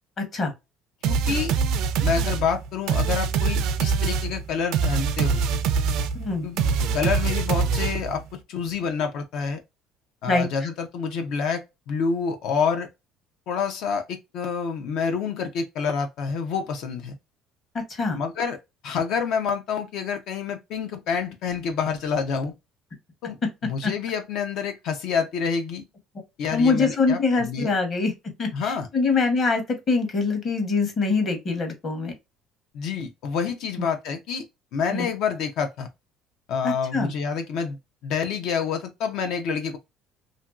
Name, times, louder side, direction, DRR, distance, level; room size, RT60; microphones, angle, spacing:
voice 1, 0.2-0.5 6.1-6.4 10.3-10.5 17.7-18.2 23.8-23.9 26.5-28.1 28.4-32.1 34.9-35.1 36.6-37.1, left 4 dB, 30° left, 0.9 m, -24 dB
voice 2, 1.0-1.5 2.0-5.4 6.4-8.2 8.5-9.6 10.2-12.9 13.5-17.2 18.1-18.6 18.8-22.5 23.2-23.4 23.6-25.8 26.4-27.8 28.5-28.9 32.7-34.4 34.7-35.9 36.5-37.8 38.0-39.8, left 6 dB, 60° left, 0.4 m, -28 dB
sound 1, 1.0-8.2, right 5 dB, 65° right, 0.3 m, -24 dB
2.9 x 2.5 x 2.2 m
cardioid pair, 165°, 0 cm